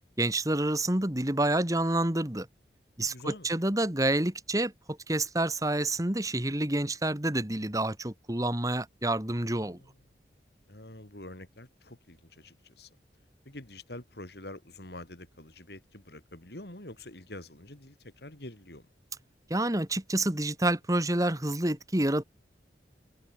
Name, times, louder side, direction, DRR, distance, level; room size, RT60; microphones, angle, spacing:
voice 1, 0.2-2.5 3.0-9.8 19.5-22.2, right 1 dB, 20° right, 1.9 m, -28 dB
voice 2, 3.0-3.5 9.4-10.0 10.7-12.9 13.4-18.9, left 1 dB, 65° left, 4.3 m, -46 dB
head